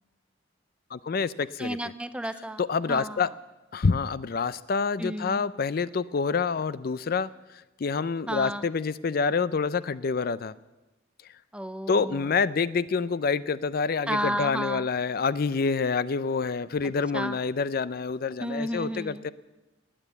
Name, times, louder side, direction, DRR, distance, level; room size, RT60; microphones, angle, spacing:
voice 1, 0.9-1.8 2.6-3.3 3.7-7.3 7.8-10.5 11.9-19.3, left 5 dB, 50° left, 17 dB, 0.4 m, -27 dB
voice 2, 1.6-2.6 2.9-3.3 5.0-5.5 8.3-8.7 11.5-12.3 14.1-14.9 16.8-17.4 18.4-19.2, right 1 dB, 5° right, 12 dB, 0.5 m, -32 dB
19.0 x 8.9 x 8.3 m, 1.0 s
head